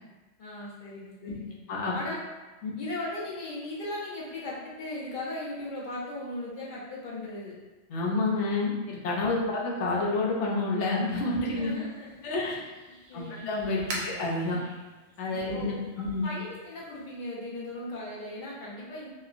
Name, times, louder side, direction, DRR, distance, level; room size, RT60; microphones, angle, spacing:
voice 1, 0.4-1.6 1.9-2.2 2.8-7.5 11.5-12.6 13.1-14.0 15.3-19.1, left 1 dB, 50° left, -5 dB, 0.7 m, -38 dB
voice 2, 7.9-11.8 12.2-12.6 13.1-14.6 15.2-16.3, left 2 dB, 80° left, -3 dB, 0.9 m, -29 dB
sound 1, 12.0-17.2, right 1 dB, 70° right, 0.8 m, -44 dB
2.9 x 2.3 x 2.4 m, 1.2 s
omnidirectional pair, 1.2 m